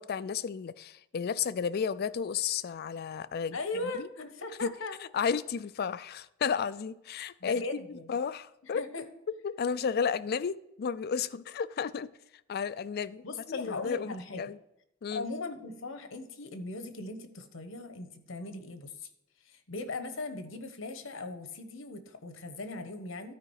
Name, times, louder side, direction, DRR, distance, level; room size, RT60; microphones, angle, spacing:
voice 1, 0.0-3.6 4.0-4.1 4.6-4.7 5.1-7.8 8.1-8.8 9.4-12.1 12.5-13.2 13.5-14.6 15.0-15.3, left 6 dB, 50° left, 16 dB, 0.4 m, -32 dB
voice 2, 3.5-5.0 7.4-8.2 8.6-9.0 13.2-14.4 15.1-19.1 19.4-23.3, left 3 dB, 70° left, 9 dB, 1.1 m, -39 dB
12.5 x 4.9 x 4.7 m, 0.84 s
head